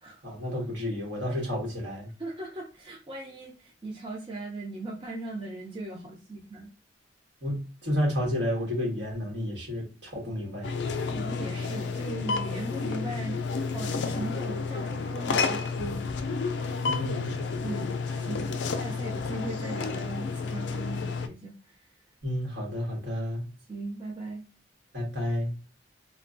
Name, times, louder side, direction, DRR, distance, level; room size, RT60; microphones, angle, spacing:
voice 1, 0.2-2.1 7.4-10.7 16.8-17.4 22.2-23.4 24.9-25.5, left 1 dB, 70° right, 1.6 m, -31 dB
voice 2, 2.2-6.7 11.1-13.4 13.7-16.2 17.6-21.8 23.7-24.4, right 2 dB, 30° right, 0.6 m, -38 dB
sound 1, 10.6-21.3, left 4 dB, 70° left, 0.4 m, -31 dB
3.1 x 2.2 x 2.5 m
head